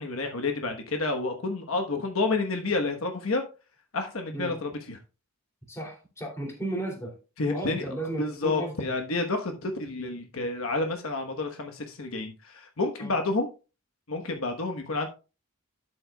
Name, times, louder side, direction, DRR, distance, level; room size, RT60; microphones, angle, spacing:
voice 1, 0.0-3.4 3.9-5.0 7.4-7.8 8.2-13.5 14.1-15.1, left 3 dB, 70° left, 1.2 m, -29 dB
voice 2, 5.7-7.2 7.4-8.9 13.0-13.2, right 1 dB, 15° left, 2.7 m, -34 dB
11.5 x 7.7 x 2.3 m
head